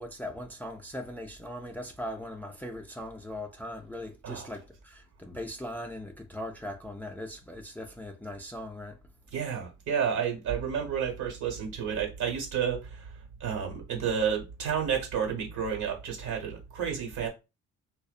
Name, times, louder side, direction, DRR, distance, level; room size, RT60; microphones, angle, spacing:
voice 1, 0.0-9.0, left 1 dB, 5° left, 0.3 m, -39 dB
voice 2, 4.2-4.6 9.3-17.3, right 7 dB, 70° right, 1.1 m, -31 dB
2.6 x 2.1 x 2.3 m
cardioid pair, 90°, 30 cm